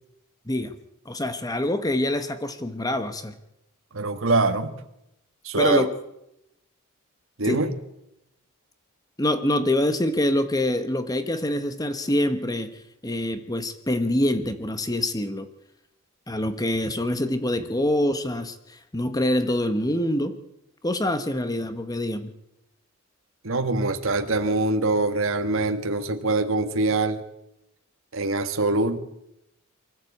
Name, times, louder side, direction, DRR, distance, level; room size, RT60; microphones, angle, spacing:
voice 1, 1.0-3.3 5.6-5.9 7.4-7.7 9.2-15.5 16.3-20.3 20.8-22.3, left 1 dB, 15° left, 10 dB, 1.1 m, -25 dB
voice 2, 3.9-4.7 5.4-5.9 7.4-7.7 23.4-27.2 28.1-29.0, right 2 dB, 70° right, 7 dB, 1.4 m, -23 dB
24.0 x 14.0 x 8.4 m, 0.86 s
head